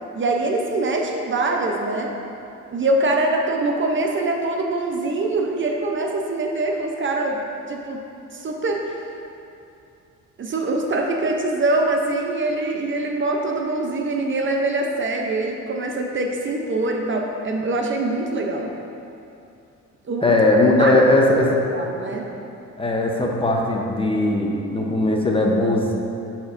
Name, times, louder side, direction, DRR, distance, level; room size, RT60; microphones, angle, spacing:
voice 1, 0.1-2.2 2.7-7.4 7.7-8.0 8.3-9.0 10.4-18.7 20.1-20.4 20.8-20.9 21.7-22.3, right 2 dB, 40° right, 2 dB, 0.6 m, -23 dB
voice 2, 20.2-21.5 22.8-25.9, left 2 dB, 20° left, -1 dB, 0.7 m, -19 dB
9.7 x 4.4 x 2.5 m, 2.7 s
cardioid pair, 90°, 30 cm